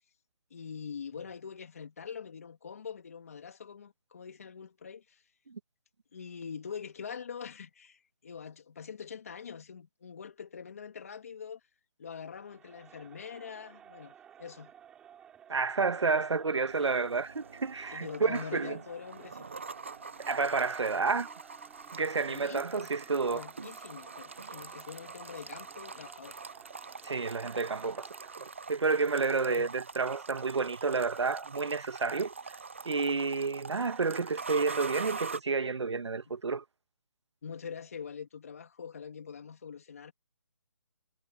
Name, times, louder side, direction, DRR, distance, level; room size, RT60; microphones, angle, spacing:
voice 1, 0.5-5.2 6.1-11.6 12.0-14.7 16.8-17.0 17.9-19.5 22.3-22.9 23.3-26.4 29.5-29.7 37.4-40.1, left 6 dB, 35° left, 2.9 m, -44 dB
Crowd, 12.4-28.6, right 9 dB, 5° right, 4.6 m, -55 dB
voice 2, 15.5-18.8 20.2-21.3 21.9-23.4 27.0-28.1 28.4-32.3 32.8-36.6, right 4 dB, 80° right, 1.6 m, -30 dB
sound 1, 16.7-35.4, right 4 dB, 25° right, 0.5 m, -44 dB
hypercardioid pair, 180°, 14 cm